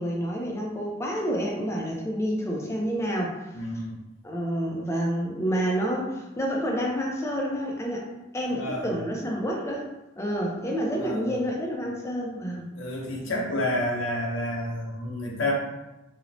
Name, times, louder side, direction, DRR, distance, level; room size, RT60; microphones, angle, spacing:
voice 1, 0.0-3.6 4.2-8.1 8.3-9.9 10.2-12.7, equal, 15° left, -1 dB, 0.3 m, -29 dB
voice 2, 3.5-4.0 8.5-9.0 11.0-11.4 12.7-15.5, left 1 dB, 85° left, -1 dB, 0.6 m, -30 dB
2.9 x 2.0 x 2.6 m, 1.0 s
head